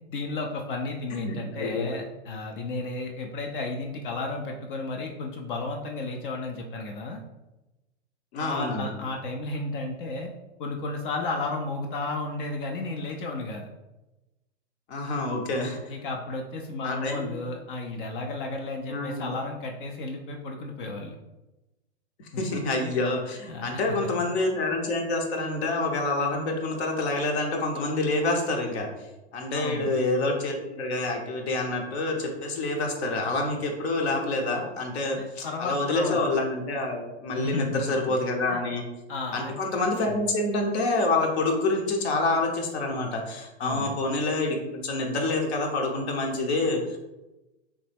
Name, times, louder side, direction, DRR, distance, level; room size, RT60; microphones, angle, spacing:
voice 1, 0.1-7.2 8.4-10.3 10.6-13.7 15.9-21.2 22.3-22.4 22.8-22.9 23.5-23.8 29.5-29.9 35.0-36.2 37.3-37.8 38.1-38.2 38.5-38.6 39.1-39.6 40.1-40.2 43.6-44.0, left 2 dB, 50° left, 2 dB, 0.4 m, -33 dB
voice 2, 1.1-1.9 8.3-9.0 14.9-15.9 16.8-17.3 18.9-19.3 22.2-28.9 29.3-38.8 39.3-47.0, left 2 dB, 70° left, 2 dB, 0.8 m, -27 dB
3.0 x 2.1 x 3.3 m, 1.0 s
hypercardioid pair, 130°, 34 cm